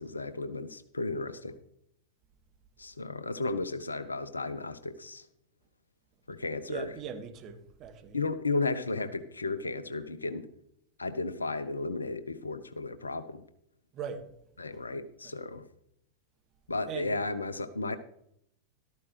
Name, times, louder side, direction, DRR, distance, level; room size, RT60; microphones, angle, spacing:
voice 1, 0.0-1.6 2.8-5.2 6.3-6.9 8.1-10.5 11.0-13.4 14.6-15.7 16.7-18.0, left 3 dB, 80° left, 0.9 m, -34 dB
voice 2, 6.7-8.2 13.9-14.2 15.2-15.3 16.9-17.1, right 7 dB, 35° right, 1.7 m, -40 dB
13.5 x 13.0 x 3.2 m
figure-of-eight pair, 90°, 0 cm